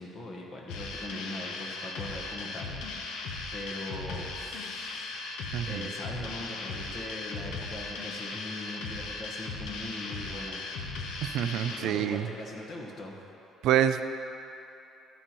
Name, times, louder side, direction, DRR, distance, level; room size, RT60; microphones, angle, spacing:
voice 1, 0.0-3.1 3.5-5.1 5.6-10.6 11.7-13.2, left 1 dB, 40° left, 0 dB, 1.2 m, -41 dB
sound 1, 0.7-11.8, left 3 dB, 80° left, 0.9 m, -37 dB
voice 2, 5.5-5.8 11.2-12.3 13.6-14.0, right 10 dB, 60° right, 10 dB, 0.3 m, -26 dB
12.5 x 8.9 x 3.0 m, 2.8 s
cardioid pair, 170°, 0 cm